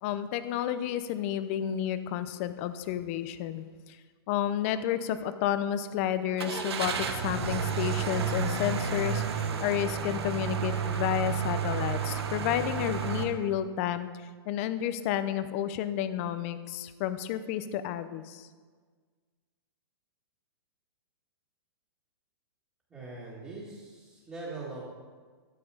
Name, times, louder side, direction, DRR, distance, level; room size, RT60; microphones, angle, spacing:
voice 1, 0.0-4.0 4.3-14.1 14.5-18.5, left 10 dB, 35° left, 12 dB, 0.5 m, -31 dB
Car / Engine starting, 6.4-13.2, right 6 dB, 75° right, 1.2 m, -31 dB
voice 2, 22.9-25.0, right 3 dB, 15° right, -9 dB, 2.0 m, -41 dB
12.5 x 6.8 x 5.0 m, 1.5 s
hypercardioid pair, 155°, 13 cm